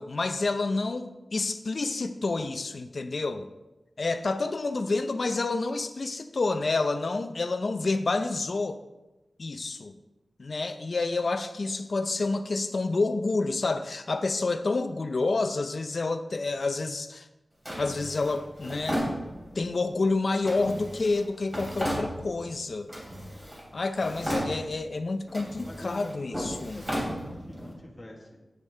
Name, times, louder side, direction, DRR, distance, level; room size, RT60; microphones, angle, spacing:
voice 1, 0.0-3.5 4.0-8.8 9.4-9.9 10.4-17.3 17.8-19.0 19.6-22.9 23.7-26.8, left 3 dB, 70° left, 9 dB, 0.5 m, -29 dB
Drawer open or close, 17.7-19.7 20.4-22.5 22.9-23.7 23.9-24.9 25.3-27.7, equal, 20° right, 3.0 m, -34 dB
voice 2, 25.6-28.4, left 1 dB, 25° left, -1 dB, 1.3 m, -45 dB
8.8 x 6.3 x 3.3 m, 1.0 s
wide cardioid pair, 65°, 0 cm